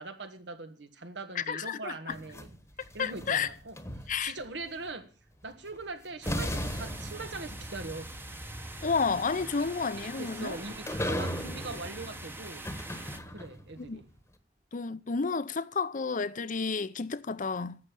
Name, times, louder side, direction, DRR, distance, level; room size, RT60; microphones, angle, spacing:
voice 1, 0.0-2.5 2.9-5.1 5.4-8.1 9.6-9.7 10.0-12.7 13.3-14.0, right 3 dB, 80° right, 1.7 m, -41 dB
voice 2, 1.4-1.9 3.0-3.5 4.1-4.3 8.8-10.6 13.8-14.0 14.7-17.8, left 5 dB, 45° left, 0.7 m, -31 dB
sound 1, 2.1-4.5 5.7-5.8 6.3-13.7, equal, 15° left, 1.2 m, -38 dB
Bicycle, 4.1-14.7, right 1 dB, 30° right, 1.6 m, -57 dB
sound 2, 6.2-13.2, right 2 dB, 15° right, 1.0 m, -45 dB
11.5 x 7.8 x 8.4 m
head